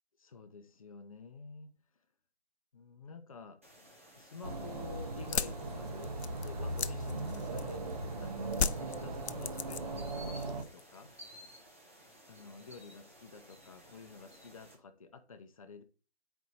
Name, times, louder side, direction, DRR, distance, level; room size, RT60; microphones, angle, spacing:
voice 1, 0.2-1.7 2.7-7.8 8.2-11.1 12.3-15.8, left 4 dB, 30° left, 0.7 m, -50 dB
sound 1, 3.6-14.7, equal, 10° right, 0.5 m, -56 dB
sound 2, 4.4-10.6, right 2 dB, 35° right, 1.0 m, -39 dB
sound 3, 5.2-7.9 8.5-10.1 10.4-10.9, left 6 dB, 70° left, 0.6 m, -35 dB
8.0 x 4.6 x 4.0 m
figure-of-eight pair, 155°, 34 cm